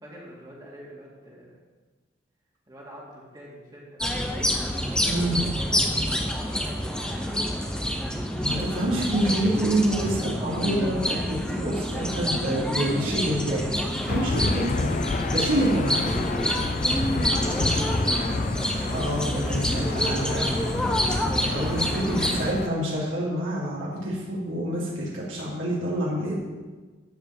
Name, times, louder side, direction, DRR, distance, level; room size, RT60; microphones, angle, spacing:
voice 1, 0.0-1.6 2.7-4.0 4.6-5.9 6.3-7.7 15.4-15.7 16.1-17.9 21.3-22.3, equal, 20° right, -5 dB, 2.3 m, -45 dB
sound 1, 4.0-22.5, equal, 5° left, 0.9 m, -27 dB
voice 2, 5.0-5.4 8.4-15.0 15.3-16.0 18.9-20.5 21.5-26.3, right 1 dB, 90° right, -7 dB, 3.2 m, -27 dB
Aircraft / Engine, 14.1-22.7, left 3 dB, 40° left, 0.4 m, -29 dB
12.5 x 5.1 x 7.3 m, 1.3 s
head